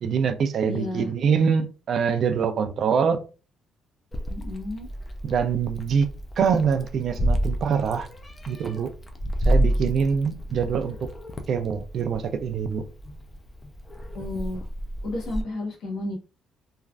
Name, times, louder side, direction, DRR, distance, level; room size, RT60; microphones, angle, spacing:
voice 1, 0.0-3.2 5.2-8.1 8.5-8.9 9.5-11.1 11.5-12.8, right 6 dB, 45° right, 0.4 m, -24 dB
voice 2, 0.7-1.1 4.3-4.9 14.1-14.7 15.0-16.2, left 2 dB, 60° left, 1.1 m, -32 dB
Meow, 4.1-15.4, equal, 20° left, 0.4 m, -30 dB
3.1 x 2.4 x 2.3 m
cardioid pair, 160°, 0 cm